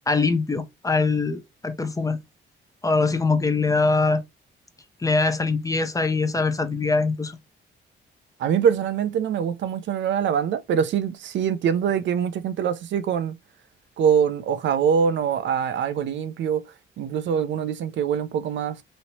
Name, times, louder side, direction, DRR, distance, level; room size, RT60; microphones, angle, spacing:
voice 1, 0.1-2.2 2.8-4.2 5.0-7.4, left 3 dB, 15° left, 0.6 m, -23 dB
voice 2, 8.4-13.4 14.0-18.8, right 8 dB, 70° right, 0.6 m, -24 dB
3.1 x 2.8 x 2.8 m
cardioid pair, 90°, 20 cm